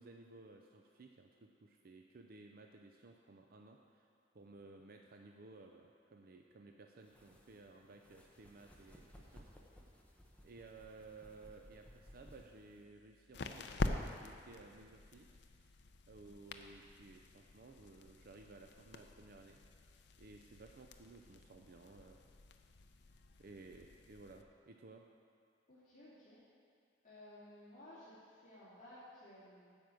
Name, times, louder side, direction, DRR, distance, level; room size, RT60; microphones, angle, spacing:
voice 1, 0.0-4.1 4.3-9.5 10.4-15.3 15.6-15.7 16.1-19.6 20.2-22.2 23.4-25.0, right 3 dB, 55° right, 3 dB, 0.5 m, -57 dB
sound 1, 7.0-12.8, equal, 10° left, 1.0 m, -61 dB
sound 2, 12.0-24.4, left 2 dB, 70° left, 0.6 m, -46 dB
voice 2, 25.7-26.4 27.0-29.7, left 1 dB, 45° left, -12 dB, 2.5 m, -57 dB
9.5 x 5.3 x 7.6 m, 2.2 s
head